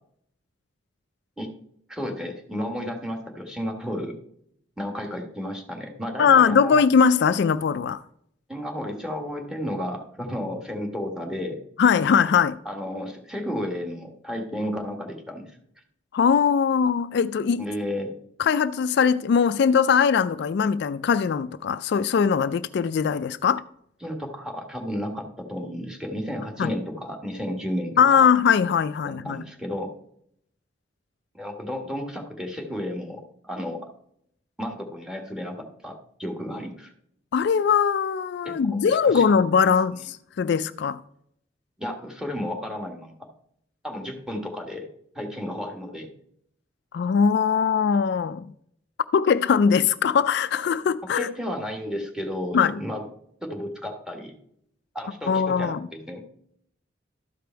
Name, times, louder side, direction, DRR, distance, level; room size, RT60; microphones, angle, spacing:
voice 1, 1.9-4.2 4.8-6.8 8.5-11.6 12.6-15.6 17.6-18.1 24.0-28.2 29.0-29.9 31.3-33.2 33.5-33.8 34.6-36.9 38.4-39.3 41.8-43.1 43.8-44.9 45.1-46.1 51.1-53.0 53.4-54.3 54.9-56.2, equal, 5° right, 1.5 m, -32 dB
voice 2, 6.2-8.0 11.8-12.6 16.1-17.6 18.4-23.6 26.6-26.7 28.0-29.4 37.3-41.0 46.9-48.5 49.1-51.3 52.5-52.8 55.3-55.9, left 6 dB, 60° left, 0.3 m, -21 dB
12.5 x 5.1 x 4.5 m
head